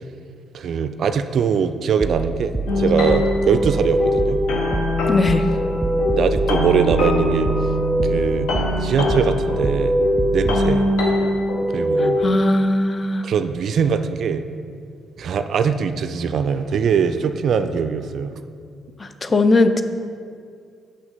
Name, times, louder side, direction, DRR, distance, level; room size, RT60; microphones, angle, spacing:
voice 1, 0.5-4.4 6.1-7.5 8.0-8.5 8.8-10.0 10.3-10.9 11.7-12.2 13.2-14.4 15.2-18.4, right 6 dB, 55° right, 10 dB, 0.3 m, -22 dB
sound 1, 2.0-10.7, right 2 dB, 15° right, 0.6 m, -27 dB
sound 2, 2.7-12.4, left 1 dB, 65° left, 0.8 m, -21 dB
voice 2, 5.1-5.4 12.2-13.2 19.2-19.8, left 2 dB, 35° left, 9 dB, 0.5 m, -18 dB
5.9 x 5.7 x 3.9 m, 2.3 s
hypercardioid pair, 45°, 0 cm